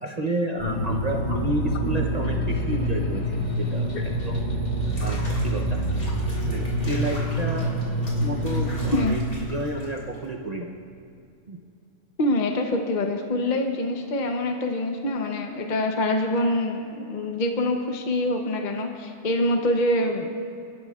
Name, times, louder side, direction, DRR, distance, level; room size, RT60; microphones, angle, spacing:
voice 1, 0.0-4.4 5.0-5.8 6.5-7.7 8.2-10.8 11.5-11.6, right 1 dB, 75° right, 0 dB, 0.3 m, -31 dB
sound 1, 0.6-9.1, equal, 25° left, 1.7 m, -26 dB
Water / Bathtub (filling or washing), 4.8-10.3, left 1 dB, 70° left, 3.4 m, -43 dB
voice 2, 12.2-20.3, left 1 dB, 45° left, 3 dB, 0.6 m, -25 dB
28.0 x 11.5 x 2.4 m, 2.6 s
omnidirectional pair, 1.8 m